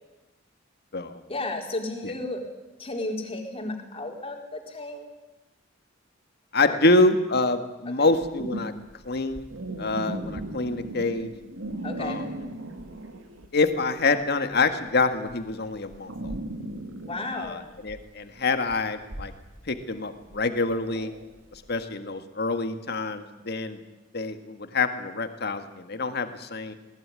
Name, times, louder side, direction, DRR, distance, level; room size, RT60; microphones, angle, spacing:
voice 1, 1.3-2.5 2.8-5.1 6.6-7.0 8.0-8.1 11.8-12.2 17.0-17.6, left 2 dB, 30° left, 2 dB, 4.2 m, -33 dB
voice 2, 6.5-8.7 9.1-9.5 9.8-11.3 12.0-12.3 13.5-16.4 17.3-19.3 19.7-21.1 21.5-23.8 24.1-26.7, left 3 dB, 55° left, 8 dB, 1.8 m, -26 dB
sound 1, 8.1-13.7 14.0-21.8, right 1 dB, 85° right, 2.8 m, -37 dB
20.5 x 18.5 x 9.8 m, 1.0 s
head